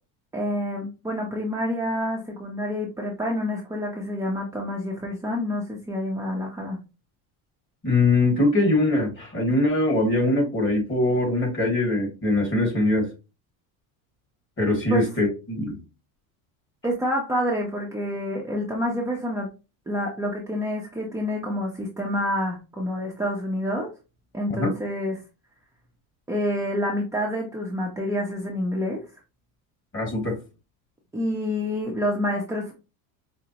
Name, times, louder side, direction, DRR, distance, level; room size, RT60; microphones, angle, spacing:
voice 1, 0.3-6.8 14.9-15.0 16.8-19.5 19.9-23.9 24.3-25.2 26.3-29.0 31.1-32.7, left 1 dB, 5° right, -2 dB, 0.7 m, -28 dB
voice 2, 7.8-13.1 14.6-15.8 24.5-24.7 29.9-30.3, left 2 dB, 25° left, 0 dB, 2.0 m, -22 dB
5.0 x 2.1 x 2.9 m, 0.30 s
supercardioid pair, 120°, 42 cm